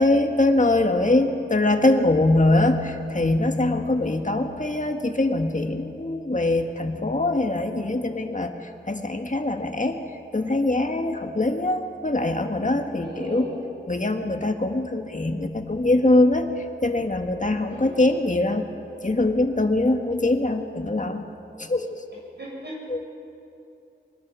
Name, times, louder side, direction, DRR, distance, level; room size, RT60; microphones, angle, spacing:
voice 1, 0.0-10.0 10.3-13.5 13.9-18.6 19.0-21.2 21.6-22.0 22.9-23.0, left 2 dB, 40° left, 5 dB, 1.8 m, -23 dB
voice 2, 13.0-13.6 17.7-18.0 22.4-22.8, equal, 65° right, -4 dB, 7.0 m, -37 dB
23.5 x 20.5 x 6.3 m, 2.8 s
wide cardioid pair, 50°, 19 cm